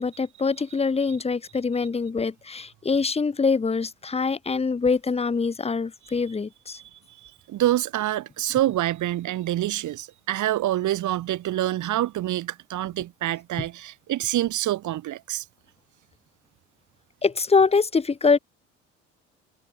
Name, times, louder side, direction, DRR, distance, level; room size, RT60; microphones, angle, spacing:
voice 1, 0.0-6.8 17.2-18.4, left 4 dB, 15° left, 1.0 m, -24 dB
voice 2, 7.2-15.4, right 14 dB, 50° right, 2.2 m, -26 dB
figure-of-eight pair, 55°, 37 cm